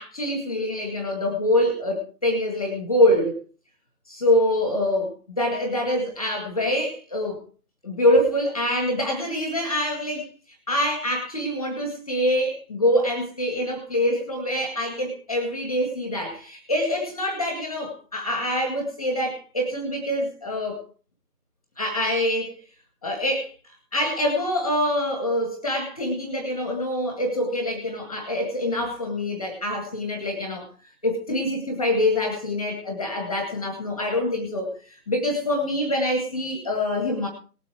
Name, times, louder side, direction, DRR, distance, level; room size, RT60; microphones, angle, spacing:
voice 1, 0.0-3.4 4.1-7.4 7.8-10.3 10.7-20.8 21.8-22.6 23.0-23.5 23.9-30.7 31.0-37.3, left 1 dB, 5° left, 2 dB, 1.4 m, -25 dB
19.0 x 8.2 x 4.8 m, 0.39 s
figure-of-eight pair, 165°, 47 cm